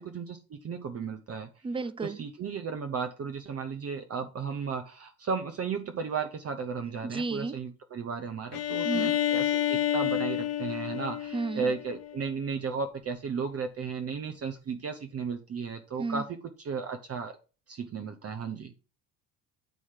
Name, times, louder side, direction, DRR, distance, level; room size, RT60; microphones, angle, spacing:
voice 1, 0.0-1.5 2.0-16.3 16.6-17.4 17.7-18.7, right 5 dB, 35° right, 0.9 m, -34 dB
voice 2, 1.6-2.2 7.0-7.6 8.8-9.2 11.3-11.7 16.0-16.2, right 3 dB, 10° right, 0.5 m, -32 dB
Bowed string instrument, 8.5-12.3, left 12 dB, 60° left, 0.8 m, -29 dB
9.2 x 3.1 x 5.7 m
hypercardioid pair, 55°, 44 cm